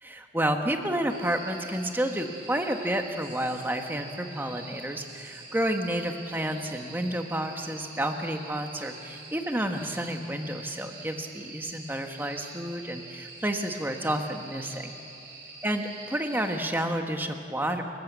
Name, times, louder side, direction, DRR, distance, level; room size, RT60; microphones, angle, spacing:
voice 1, 0.0-14.9 15.6-17.8, right 1 dB, 10° right, 4 dB, 1.4 m, -30 dB
sound 1, 1.1-16.6, right 3 dB, 70° right, 5.1 m, -45 dB
29.5 x 14.5 x 8.3 m, 2.9 s
head